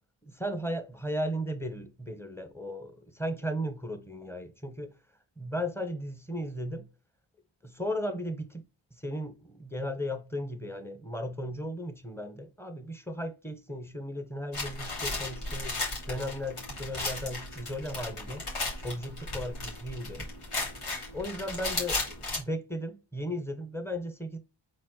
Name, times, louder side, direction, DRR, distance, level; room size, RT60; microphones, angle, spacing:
voice 1, 0.2-4.9 5.4-6.9 7.6-8.6 8.9-18.5 18.8-20.3 21.1-24.4, equal, 5° left, 1.2 m, -36 dB
sound 1, 14.5-22.4, left 2 dB, 85° left, 3.0 m, -35 dB
4.6 x 4.3 x 4.8 m
wide cardioid pair, 65°, 50 cm